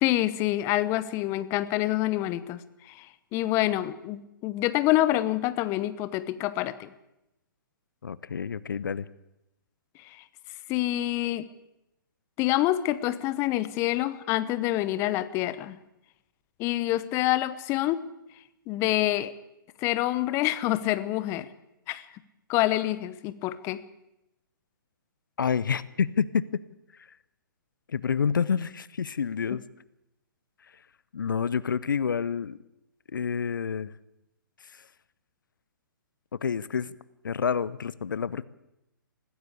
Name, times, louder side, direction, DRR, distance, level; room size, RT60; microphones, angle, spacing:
voice 1, 0.0-6.9 10.0-10.2 10.7-11.5 12.4-15.8 16.6-18.0 18.7-19.3 19.8-21.5 21.9-22.0 22.5-23.8, left 15 dB, 25° left, 15 dB, 0.9 m, -27 dB
voice 2, 8.0-9.1 25.4-26.4 27.9-29.6 31.1-32.6 33.1-33.9 34.7-34.8 36.4-36.9 37.2-38.4, left 6 dB, 65° left, 19 dB, 0.8 m, -28 dB
20.0 x 15.5 x 8.4 m, 0.89 s
figure-of-eight pair, 130°, 11 cm